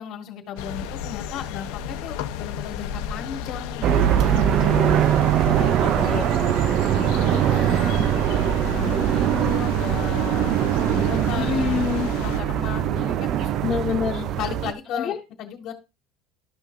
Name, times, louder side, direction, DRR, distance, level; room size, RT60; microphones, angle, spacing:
voice 1, 0.0-4.5 5.4-6.4 6.9-10.6 10.9-13.5 14.3-15.7, left 9 dB, 50° left, 4 dB, 1.8 m, -35 dB
sound 1, 0.6-12.4, left 8 dB, 75° left, 0.8 m, -34 dB
sound 2, 3.8-14.7, right 10 dB, 50° right, 0.6 m, -22 dB
voice 2, 4.3-5.2 5.8-6.2 11.4-12.1 13.6-14.3 14.9-15.2, left 7 dB, 30° left, -1 dB, 1.2 m, -27 dB
12.5 x 5.7 x 2.6 m, 0.27 s
supercardioid pair, 130°, 0 cm